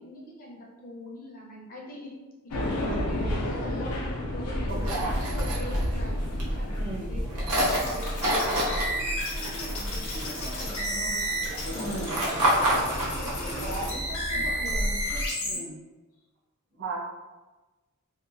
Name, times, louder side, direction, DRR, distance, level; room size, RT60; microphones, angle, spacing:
voice 1, 0.0-2.1 2.4-4.0 4.3-6.2 6.5-8.7 9.0-11.2 11.6-11.8 13.2-15.1 15.5-15.7, left 1 dB, 40° left, -3 dB, 0.6 m, -42 dB
sound 1, 2.5-9.1, left 1 dB, 85° left, 0.5 m, -32 dB
voice 2, 2.8-3.1 4.6-5.5 6.8-7.1 11.7-12.2 13.6-14.0 15.4-15.8 16.7-17.0, right 2 dB, 55° right, -2 dB, 0.5 m, -35 dB
sound 2, 4.7-15.3, equal, 90° right, 0.7 m, -30 dB
sound 3, 7.5-15.6, equal, 65° left, 0.9 m, -33 dB
2.8 x 2.1 x 2.6 m, 1.2 s
head